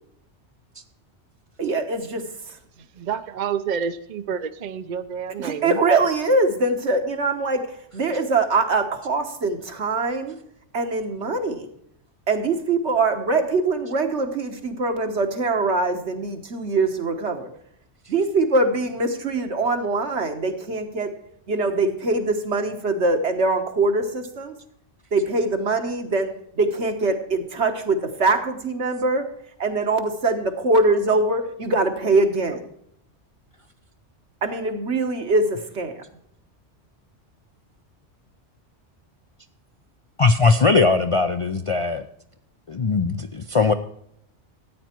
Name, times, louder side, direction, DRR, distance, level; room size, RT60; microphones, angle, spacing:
voice 1, 1.6-2.6 5.4-10.3 10.7-11.7 12.3-17.5 18.1-21.1 21.5-24.6 25.1-29.3 29.6-32.7 34.4-36.0, right 3 dB, 70° right, 6 dB, 1.6 m, -23 dB
voice 2, 2.9-5.8, right 7 dB, 50° right, 11 dB, 0.6 m, -29 dB
voice 3, 40.2-42.0 42.7-43.7, left 4 dB, 45° left, 8 dB, 0.4 m, -19 dB
13.5 x 9.3 x 4.5 m, 0.71 s
omnidirectional pair, 1.2 m